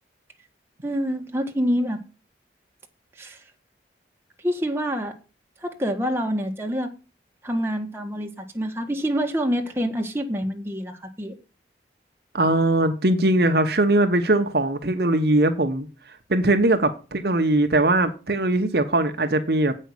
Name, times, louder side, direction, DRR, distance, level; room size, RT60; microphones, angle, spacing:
voice 1, 0.8-2.0 3.2-3.4 4.4-5.1 5.6-6.9 7.4-11.3, equal, 15° right, 1.5 m, -26 dB
voice 2, 12.3-15.9 16.3-19.8, right 2 dB, 60° right, 1.0 m, -20 dB
8.3 x 5.6 x 7.9 m
head